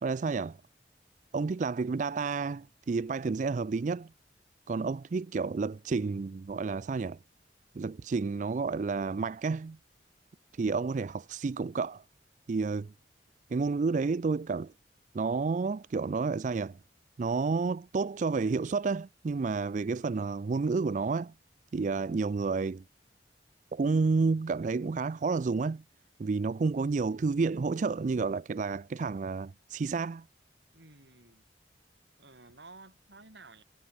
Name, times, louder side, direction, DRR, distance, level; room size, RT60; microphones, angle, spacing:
voice 1, 0.0-0.6 1.3-4.1 4.7-7.2 7.8-9.8 10.6-12.0 12.5-12.9 13.5-14.7 15.1-16.8 17.2-21.3 21.7-22.8 23.7-25.8 26.2-30.2, right 4 dB, 45° right, 0.4 m, -30 dB
voice 2, 30.7-31.4 32.2-33.6, right 3 dB, 80° right, 7.5 m, -53 dB
head